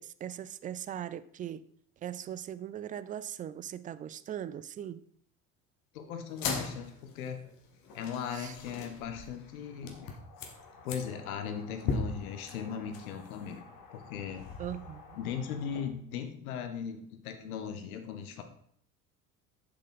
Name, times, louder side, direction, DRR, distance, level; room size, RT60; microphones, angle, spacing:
voice 1, 0.0-1.6 2.0-5.0 8.3-8.5 14.6-15.2, right 10 dB, 20° right, 0.3 m, -40 dB
voice 2, 5.9-7.4 7.9-10.0 10.8-13.6 13.9-14.5 15.1-18.4, left 7 dB, 70° left, 1.5 m, -38 dB
sound 1, 6.3-15.9, left 4 dB, 50° left, 1.9 m, -40 dB
7.3 x 5.8 x 5.7 m
hypercardioid pair, 75°, 44 cm